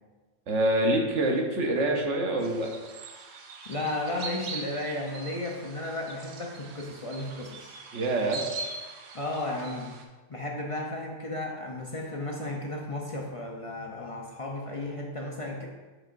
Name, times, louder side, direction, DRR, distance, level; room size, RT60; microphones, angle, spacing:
voice 1, 0.5-2.7 7.9-8.4, right 1 dB, 60° right, 1 dB, 1.1 m, -26 dB
sound 1, 2.4-10.0, right 4 dB, 75° right, 1.2 m, -42 dB
voice 2, 3.7-7.7 9.1-10.0 10.3-15.7, left 2 dB, 40° left, -1 dB, 0.4 m, -34 dB
7.1 x 6.5 x 2.5 m, 1.3 s
omnidirectional pair, 1.5 m